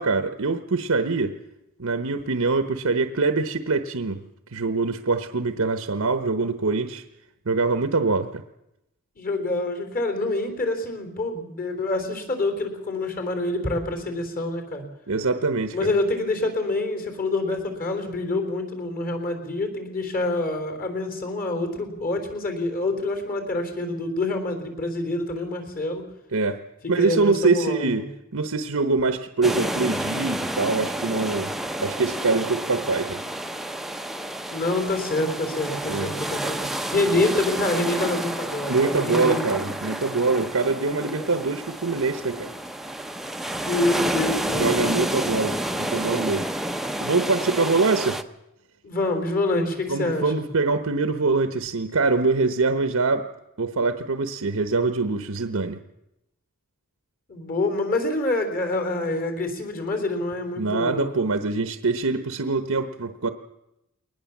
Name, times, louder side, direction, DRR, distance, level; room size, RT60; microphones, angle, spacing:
voice 1, 0.0-1.3 1.8-4.2 4.5-7.0 7.5-8.4 15.1-15.9 26.3-26.6 26.9-31.5 31.8-33.2 35.9-36.1 38.7-42.5 44.5-46.5 47.0-48.2 49.9-53.3 53.6-55.8 60.6-63.3, right 3 dB, 70° right, 9 dB, 1.0 m, -24 dB
voice 2, 9.2-14.8 15.7-26.1 26.8-28.0 34.5-36.6 36.9-39.5 40.9-41.4 42.4-42.5 43.5-45.0 47.6-47.7 48.8-50.2 57.3-61.1, left 2 dB, 40° left, 6 dB, 3.9 m, -26 dB
sound 1, 29.4-48.2, right 1 dB, ahead, 0.8 m, -30 dB
21.5 x 19.5 x 7.3 m, 0.89 s
head